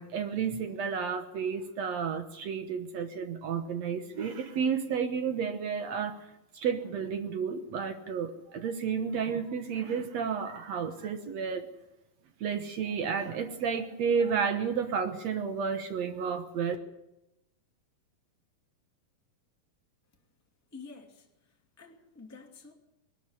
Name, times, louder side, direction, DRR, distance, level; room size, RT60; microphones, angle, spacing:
voice 1, 0.0-6.3 6.5-11.7 12.4-16.8, right 6 dB, 60° right, 8 dB, 2.1 m, -31 dB
voice 2, 20.7-22.7, left 4 dB, 5° left, 1 dB, 2.1 m, -50 dB
22.0 x 12.5 x 9.9 m, 0.90 s
omnidirectional pair, 4.0 m